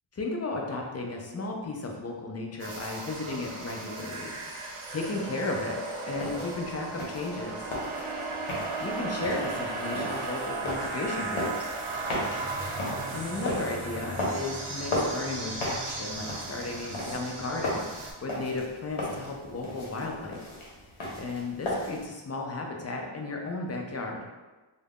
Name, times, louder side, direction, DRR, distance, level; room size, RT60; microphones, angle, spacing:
voice 1, 0.1-7.7 8.8-11.8 13.1-20.5 21.2-24.2, left 2 dB, 35° left, 1 dB, 0.4 m, -35 dB
sound 1, 2.6-18.1, right 3 dB, 80° right, 0.6 m, -36 dB
sound 2, 6.1-22.1, left 1 dB, 75° left, 0.8 m, -36 dB
2.3 x 2.0 x 3.4 m, 1.2 s
wide cardioid pair, 90°, 49 cm